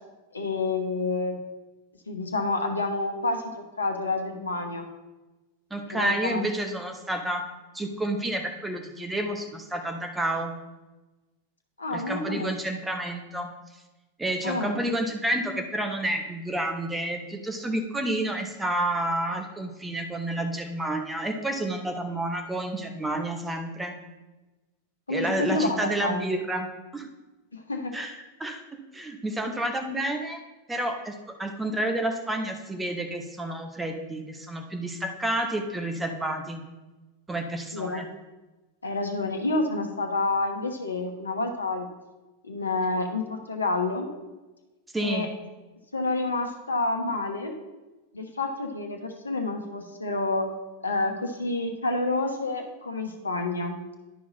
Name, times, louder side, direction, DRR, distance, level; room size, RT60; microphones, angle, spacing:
voice 1, 0.3-1.4 2.1-4.9 5.8-6.4 11.8-12.8 14.4-14.8 25.1-26.3 27.5-27.9 37.7-38.1 38.8-41.9 42.4-44.1 45.0-45.3 45.9-47.5 48.1-50.5 50.8-53.8, left 2 dB, 75° left, 4 dB, 1.1 m, -29 dB
voice 2, 5.7-7.4 7.7-10.5 11.9-13.5 14.2-23.9 25.1-26.7 26.9-27.1 27.9-28.1 28.4-28.6 28.9-30.4 30.7-31.1 31.4-36.6 37.3-38.1 44.9-45.3, right 1 dB, 10° right, 4 dB, 1.1 m, -30 dB
11.0 x 4.9 x 4.1 m, 1.1 s
figure-of-eight pair, 90°, 0 cm